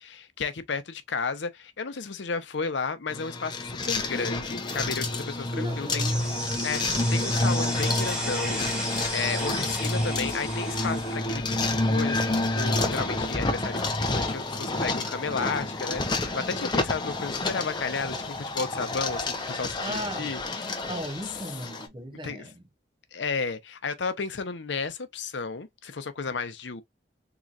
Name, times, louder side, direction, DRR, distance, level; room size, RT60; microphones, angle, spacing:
voice 1, 0.0-6.1 6.6-20.9 21.3-21.4 22.2-22.5 23.1-26.8, left 4 dB, 75° left, 0.7 m, -33 dB
sound 1, 3.1-21.9, left 2 dB, 25° left, 0.7 m, -29 dB
voice 2, 5.5-6.2 19.8-20.3 20.9-22.6, equal, 25° right, 0.7 m, -36 dB
sound 2, 5.9-11.2, equal, 5° right, 1.2 m, -34 dB
3.8 x 2.9 x 2.4 m
head